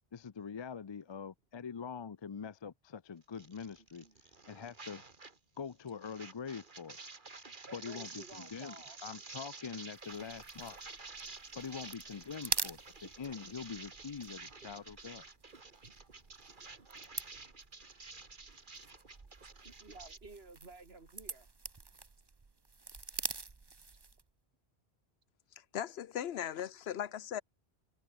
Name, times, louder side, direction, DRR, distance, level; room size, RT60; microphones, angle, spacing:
voice 1, 0.1-4.0 4.5-5.0 5.6-7.0 7.7-8.8 9.0-10.8 11.6-15.3, left 6 dB, 40° left, 0.4 m, -44 dB
sound 1, 3.3-5.4 5.7-20.2, right 3 dB, 50° right, 2.0 m, -51 dB
voice 2, 7.6-9.0 12.5-12.6 19.8-21.5 27.1-27.2, right 3 dB, 75° right, 3.3 m, -53 dB
sound 2, 9.9-24.3, right 4 dB, 25° right, 0.8 m, -45 dB
voice 3, 25.6-27.4, left 10 dB, 80° left, 1.0 m, -38 dB
omnidirectional pair, 1.0 m